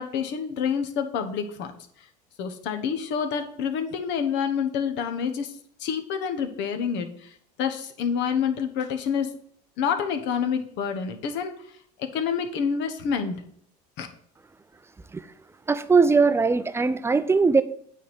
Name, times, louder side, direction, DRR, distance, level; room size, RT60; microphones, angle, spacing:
voice 1, 0.0-1.7 2.4-5.5 5.8-9.3 9.8-13.4 14.0-14.1, left 7 dB, 60° left, 6 dB, 1.2 m, -28 dB
voice 2, 15.7-17.6, right 4 dB, 10° right, 13 dB, 0.5 m, -20 dB
9.0 x 3.6 x 6.2 m, 0.64 s
supercardioid pair, 90°, 21 cm